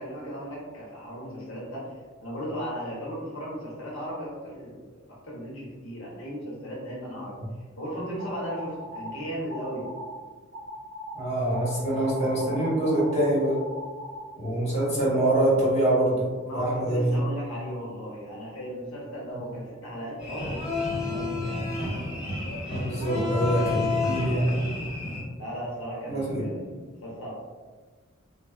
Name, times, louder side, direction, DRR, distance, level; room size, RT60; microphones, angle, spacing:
voice 1, 0.0-1.9 2.2-7.4 7.8-9.9 16.4-21.8 22.4-23.7 25.4-27.3, equal, 85° left, -6 dB, 0.7 m, -36 dB
sound 1, 8.2-9.1 9.5-10.2 10.5-11.2 11.5-14.2, equal, 45° right, 0.4 m, -39 dB
voice 2, 11.1-13.6 14.4-16.3 16.5-17.2 22.7-24.6 26.1-26.4, right 1 dB, 35° left, -9 dB, 1.2 m, -24 dB
sound 2, 20.2-25.2, left 3 dB, 5° right, 1.1 m, -30 dB
2.7 x 2.2 x 2.3 m, 1.4 s
head